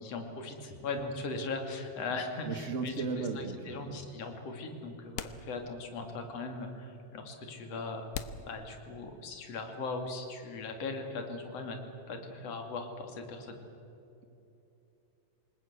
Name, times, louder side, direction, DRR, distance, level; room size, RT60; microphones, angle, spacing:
voice 1, 0.0-8.1 8.5-11.8 12.1-13.6, left 3 dB, 50° left, 4 dB, 3.3 m, -39 dB
voice 2, 2.4-4.0, right 4 dB, 75° right, 7 dB, 0.7 m, -36 dB
sound 1, 5.1-6.1 6.4-6.5 7.2-7.3 8.1-9.4, left 9 dB, 90° left, 2.6 m, -43 dB
28.0 x 19.5 x 8.1 m, 2.9 s
omnidirectional pair, 3.9 m